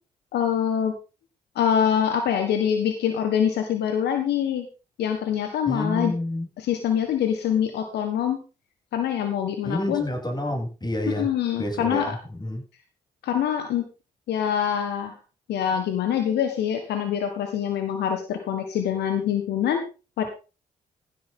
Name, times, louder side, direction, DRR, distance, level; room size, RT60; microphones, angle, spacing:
voice 1, 0.3-0.9 1.5-4.6 5.0-6.1 6.6-8.4 8.9-10.0 11.1-12.2 13.2-13.8 14.3-15.1 15.5-19.8 20.2-20.3, left 9 dB, 75° left, 1.6 m, -24 dB
voice 2, 5.7-6.5 9.6-11.3 11.6-12.6, left 1 dB, 25° left, 7.8 m, -29 dB
16.0 x 8.4 x 3.8 m
hypercardioid pair, 45°, 17 cm